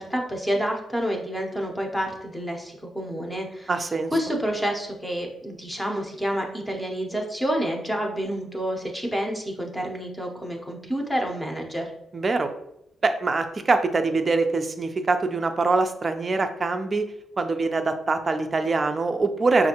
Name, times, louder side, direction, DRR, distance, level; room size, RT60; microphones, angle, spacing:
voice 1, 0.0-3.7 4.1-11.9, equal, 5° left, 1 dB, 0.7 m, -28 dB
voice 2, 3.7-4.1 12.1-12.5 13.0-17.1 17.4-19.7, right 3 dB, 25° right, 7 dB, 0.4 m, -24 dB
5.5 x 2.5 x 2.8 m, 0.80 s
wide cardioid pair, 155°, 0 cm